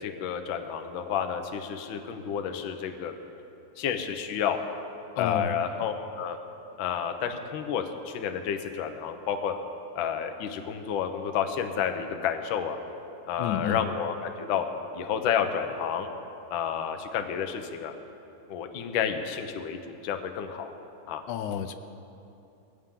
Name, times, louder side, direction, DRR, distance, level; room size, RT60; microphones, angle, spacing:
voice 1, 0.0-3.1 3.8-4.6 5.2-6.4 6.8-9.5 9.9-12.8 13.3-14.7 14.9-16.1 16.5-17.9 18.5-20.7 21.1-21.2, left 8 dB, 65° left, 6 dB, 1.2 m, -30 dB
voice 2, 5.2-5.6 13.4-13.8 21.3-21.7, left 9 dB, 90° left, 9 dB, 2.2 m, -30 dB
21.0 x 16.0 x 3.8 m, 2.7 s
omnidirectional pair, 3.4 m